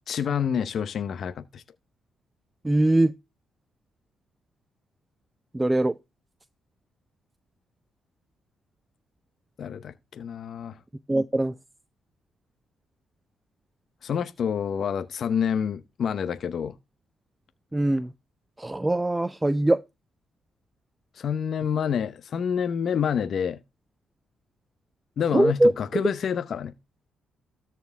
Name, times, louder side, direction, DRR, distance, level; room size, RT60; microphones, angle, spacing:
voice 1, 0.1-1.6 9.6-10.8 14.0-16.7 21.2-23.6 25.2-26.7, left 7 dB, 55° left, 0.8 m, -28 dB
voice 2, 2.6-3.1 5.5-5.9 11.1-11.5 17.7-18.1 18.6-19.8 25.3-25.7, right 1 dB, 15° right, 0.5 m, -21 dB
13.5 x 4.6 x 3.5 m
cardioid pair, 90°, 0 cm